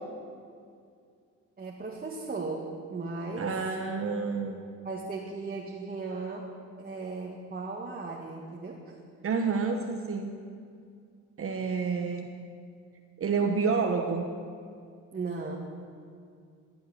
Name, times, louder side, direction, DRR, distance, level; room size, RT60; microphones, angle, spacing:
voice 1, 1.6-3.6 4.8-6.5 6.8-8.8 15.1-15.6, right 3 dB, 30° right, -3 dB, 1.9 m, -36 dB
voice 2, 3.4-4.6 9.2-10.4 11.4-12.3 13.2-14.3, right 5 dB, 45° right, 3 dB, 1.2 m, -29 dB
14.5 x 7.9 x 9.6 m, 2.3 s
cardioid pair, 90°, 30 cm